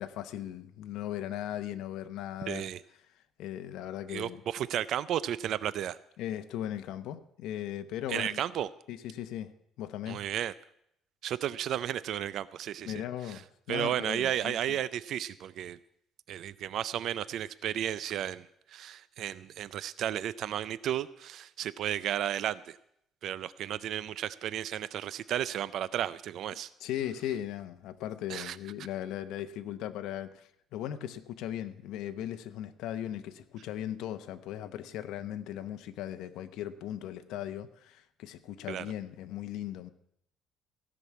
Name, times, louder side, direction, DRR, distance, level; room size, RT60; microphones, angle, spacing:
voice 1, 0.0-2.7 3.4-4.4 6.2-8.4 8.9-9.5 9.8-10.2 12.8-14.8 26.8-39.9, left 11 dB, 80° left, 9 dB, 0.8 m, -38 dB
voice 2, 2.5-2.8 4.1-6.0 8.1-8.7 10.1-10.5 11.2-13.4 13.7-15.8 16.3-22.8 23.2-26.7 28.3-28.6 38.7-38.9, right 11 dB, 60° right, 17 dB, 0.4 m, -33 dB
16.0 x 6.1 x 8.3 m, 0.74 s
cardioid pair, 145°, 0 cm